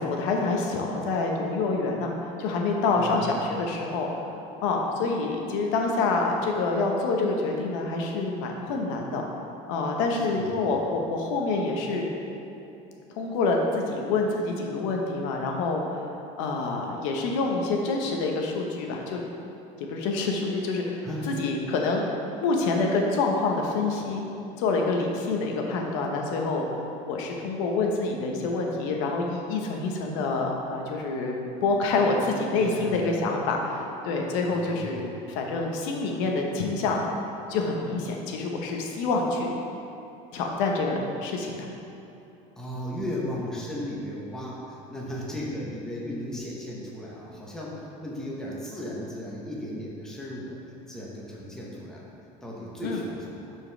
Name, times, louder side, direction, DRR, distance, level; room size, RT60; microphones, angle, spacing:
voice 1, 0.0-2.1 2.4-4.1 4.6-9.2 9.7-12.1 13.2-16.1 16.4-19.2 19.9-22.1 22.4-24.2 24.6-37.0 37.5-39.5 40.3-41.6 52.8-53.0, left 3 dB, 90° left, 1 dB, 1.1 m, -27 dB
voice 2, 2.9-3.3 10.1-10.8 21.0-21.4 32.6-33.1 34.5-35.0 42.6-50.6 50.9-52.1 52.4-53.6, left 1 dB, 5° left, -5 dB, 0.9 m, -36 dB
11.0 x 4.7 x 3.4 m, 3.0 s
cardioid pair, 175°, 15 cm